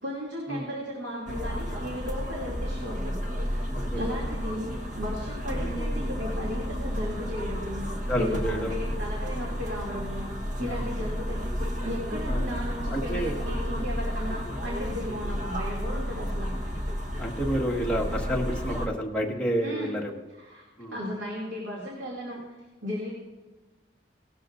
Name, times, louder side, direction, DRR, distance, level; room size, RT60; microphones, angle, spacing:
voice 1, 0.0-3.7 3.9-4.7 5.0-10.3 10.6-16.5 19.6-19.9 20.4-20.6 20.9-22.4 22.8-23.1, equal, 85° right, -3 dB, 2.7 m, -35 dB
sound 1, 1.3-18.9, equal, 45° right, 1.3 m, -32 dB
voice 2, 8.1-8.8 10.6-10.7 12.3-12.4 12.9-13.4 17.2-20.1 20.8-21.0, equal, 5° left, -3 dB, 1.7 m, -29 dB
18.5 x 12.5 x 2.6 m, 1.2 s
head